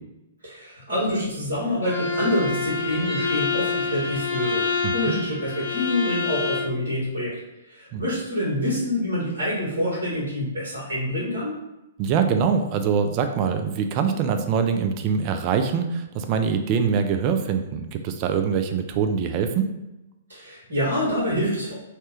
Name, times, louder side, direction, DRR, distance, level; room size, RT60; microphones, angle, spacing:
voice 1, 0.4-7.3 7.7-11.5 20.3-21.8, left 1 dB, 70° right, -8 dB, 1.3 m, -26 dB
Bowed string instrument, 1.8-6.8, left 4 dB, 70° left, 0.7 m, -27 dB
voice 2, 4.8-5.1 7.9-8.0 12.0-19.7, right 6 dB, 35° right, 7 dB, 0.3 m, -24 dB
2.8 x 2.1 x 3.4 m, 0.94 s
figure-of-eight pair, 115°, 0 cm